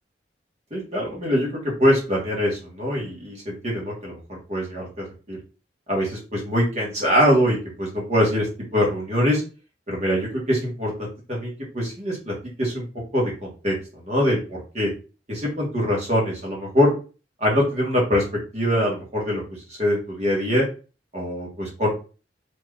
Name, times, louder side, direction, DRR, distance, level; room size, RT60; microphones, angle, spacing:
voice 1, 0.7-5.4 5.9-8.5 8.7-9.4 9.9-12.8 13.1-13.7 14.0-14.9 15.3-16.9 17.4-18.2 18.5-19.4 19.8-20.6 21.1-21.9, equal, 40° right, -3 dB, 1.3 m, -23 dB
3.4 x 2.9 x 2.4 m, 0.35 s
head